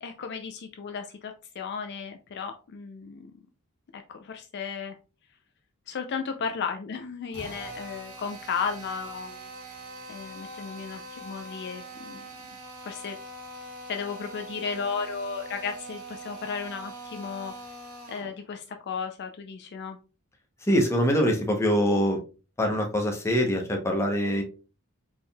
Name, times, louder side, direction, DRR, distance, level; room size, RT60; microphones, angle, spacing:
voice 1, 0.0-3.3 3.9-5.0 5.9-9.4 10.1-12.3 12.8-13.2 13.9-17.5 18.1-20.0, left 6 dB, 50° left, 6 dB, 0.4 m, -34 dB
Drill, 7.3-18.3, right 2 dB, 70° right, 1.6 m, -42 dB
voice 2, 20.6-22.2 22.6-24.4, equal, 10° left, 1 dB, 0.8 m, -24 dB
4.3 x 3.6 x 2.2 m, 0.33 s
head